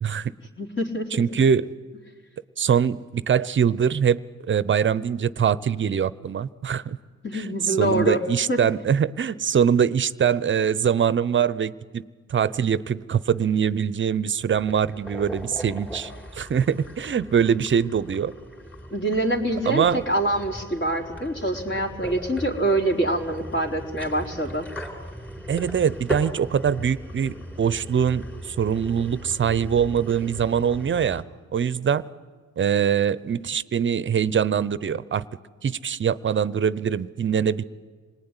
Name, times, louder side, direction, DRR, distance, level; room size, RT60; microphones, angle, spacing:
voice 1, 0.0-0.3 1.2-1.7 2.6-4.2 4.5-7.0 7.3-12.0 12.3-18.3 19.7-20.0 25.5-31.2 31.5-32.0 32.6-35.2 35.6-37.6, right 7 dB, 40° right, 18 dB, 0.8 m, -23 dB
voice 2, 0.6-1.2 7.2-8.2 8.5-8.6 18.9-24.7, right 1 dB, 40° left, 2 dB, 4.1 m, -25 dB
sound 1, 14.5-31.2, equal, 5° left, 4.0 m, -38 dB
27.0 x 19.5 x 9.9 m, 1.5 s
cardioid pair, 90°, 30 cm